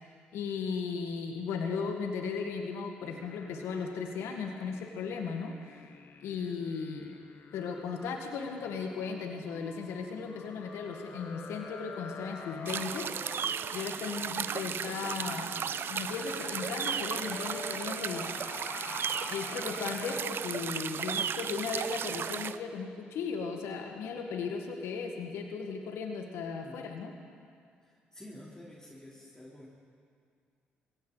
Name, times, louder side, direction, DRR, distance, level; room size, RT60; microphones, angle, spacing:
voice 1, 0.3-5.8 6.2-7.1 7.5-13.1 13.7-15.5 15.9-18.3 19.3-27.1, left 5 dB, 75° left, 3 dB, 1.6 m, -36 dB
sound 1, 3.0-20.2, left 5 dB, 50° left, 1.1 m, -47 dB
sound 2, 12.7-22.6, right 7 dB, 55° right, 0.6 m, -35 dB
voice 2, 27.8-29.7, left 1 dB, 15° left, -4 dB, 3.3 m, -50 dB
21.0 x 16.5 x 4.0 m, 2.3 s
supercardioid pair, 55°, 5 cm